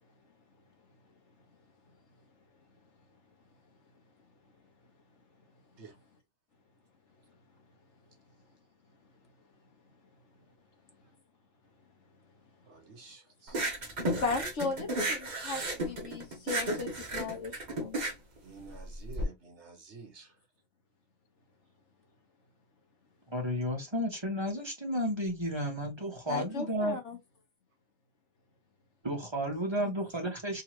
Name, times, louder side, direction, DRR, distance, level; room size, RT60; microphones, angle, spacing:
voice 1, 12.7-13.7 18.4-20.4, right 4 dB, 55° right, 1.3 m, -50 dB
sound 1, 13.5-19.2, right 1 dB, 35° right, 1.0 m, -33 dB
voice 2, 14.2-18.0 26.3-27.2 29.8-29.9, left 4 dB, 60° left, 1.4 m, -36 dB
voice 3, 23.3-27.0 29.0-30.6, equal, 20° right, 1.4 m, -32 dB
3.9 x 2.8 x 2.9 m
omnidirectional pair, 1.4 m